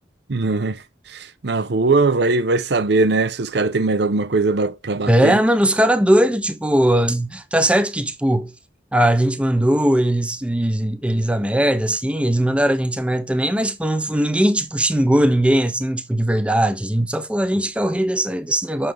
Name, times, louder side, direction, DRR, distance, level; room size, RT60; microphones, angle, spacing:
voice 1, 0.3-0.8 1.1-5.4, right 3 dB, 70° right, 0.7 m, -20 dB
voice 2, 5.1-8.5 8.9-18.9, right 1 dB, 5° right, 0.5 m, -19 dB
6.0 x 5.7 x 3.4 m
head